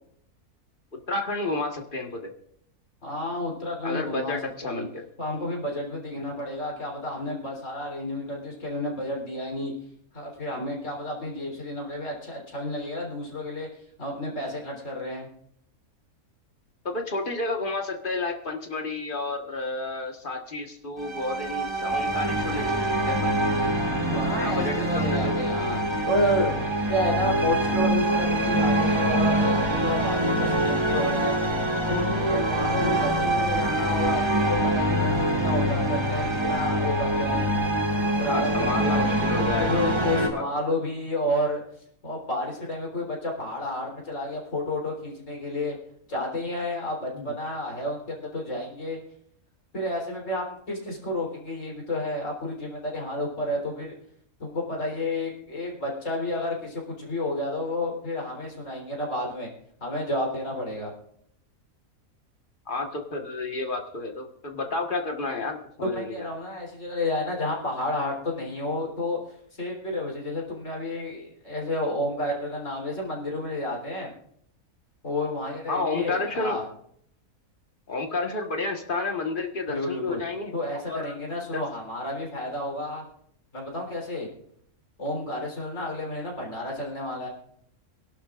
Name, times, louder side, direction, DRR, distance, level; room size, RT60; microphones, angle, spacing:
voice 1, 1.1-2.3 3.8-5.0 16.8-23.4 24.4-25.4 38.3-40.4 47.1-47.3 62.7-66.3 75.7-76.6 77.9-80.5 80.9-81.2 81.5-81.6, left 3 dB, 35° left, 3 dB, 1.6 m, -31 dB
voice 2, 3.0-4.8 5.2-9.7 10.1-13.7 14.0-15.3 23.9-26.6 26.9-31.4 31.9-37.5 38.2-39.1 39.6-41.6 42.0-45.8 46.1-49.0 49.7-53.9 54.4-59.5 59.8-60.9 65.8-74.1 75.0-76.6 79.7-80.2 80.5-83.1 83.5-84.3 85.0-87.3, left 1 dB, 60° left, -1 dB, 4.3 m, -31 dB
sound 1, 21.0-40.3, right 1 dB, 20° right, 1.5 m, -25 dB
25.5 x 11.5 x 2.5 m, 0.69 s
omnidirectional pair, 1.5 m